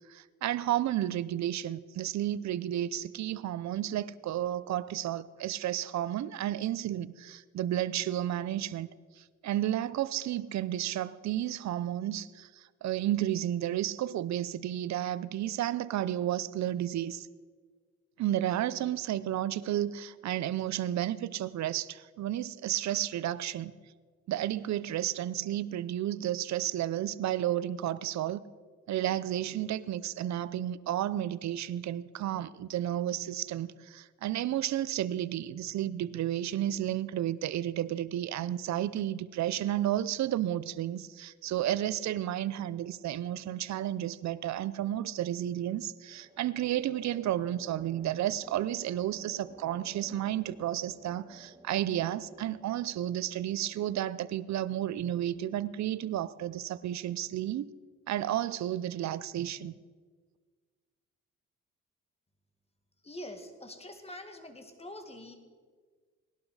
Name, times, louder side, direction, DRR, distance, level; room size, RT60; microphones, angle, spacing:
voice 1, 0.1-8.9 9.2-17.3 18.2-23.7 24.3-28.4 28.9-57.7 58.1-59.7, right 12 dB, 65° right, 17 dB, 0.7 m, -32 dB
sound 1, 43.0-43.5 46.1-57.4, right 1 dB, 15° right, 1.5 m, -55 dB
voice 2, 63.0-65.3, left 1 dB, 20° left, 6 dB, 2.0 m, -45 dB
19.0 x 11.5 x 4.9 m, 1.5 s
cardioid pair, 90°, 30 cm